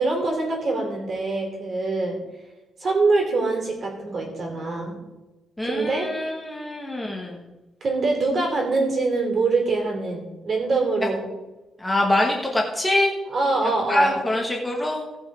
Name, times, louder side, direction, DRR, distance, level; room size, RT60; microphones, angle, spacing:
voice 1, 0.0-2.2 2.8-5.0 5.6-6.1 7.8-11.3 13.3-14.2, right 3 dB, 35° right, 1 dB, 3.0 m, -24 dB
voice 2, 5.6-7.4 11.8-13.1 13.6-15.0, left 1 dB, 10° left, -1 dB, 1.3 m, -24 dB
17.0 x 6.2 x 4.8 m, 1.1 s
cardioid pair, 170°, 0 cm